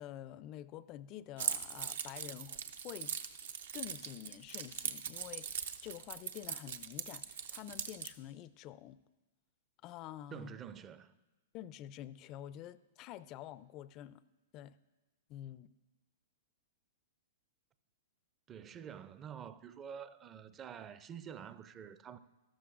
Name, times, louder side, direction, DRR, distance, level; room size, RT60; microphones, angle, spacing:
voice 1, 0.0-2.6 2.8-3.1 3.7-9.0 9.8-10.5 11.5-14.2 14.5-14.7 15.3-15.7, left 12 dB, 35° left, 0.4 m, -48 dB
Keys jangling, 1.4-8.1, right 8 dB, 75° right, 0.7 m, -40 dB
voice 2, 10.3-11.1 18.5-22.2, right 8 dB, 25° right, 0.4 m, -48 dB
13.0 x 12.5 x 2.5 m
hypercardioid pair, 130°, 0 cm